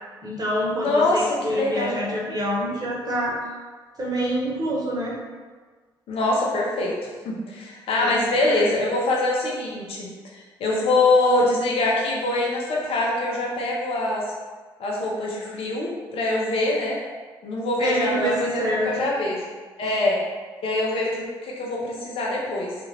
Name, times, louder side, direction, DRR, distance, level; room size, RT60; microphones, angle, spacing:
voice 1, 0.2-3.3 4.0-5.2 8.0-8.2 17.8-18.9 19.9-20.0, equal, 35° right, -4 dB, 1.0 m, -26 dB
voice 2, 0.7-1.9 6.1-6.9 7.2-10.1 10.6-14.2 14.8-17.0 17.4-19.4 19.8-20.2 20.6-22.8, left 2 dB, 60° left, -3 dB, 0.8 m, -24 dB
2.5 x 2.3 x 3.2 m, 1.4 s
hypercardioid pair, 50°, 11 cm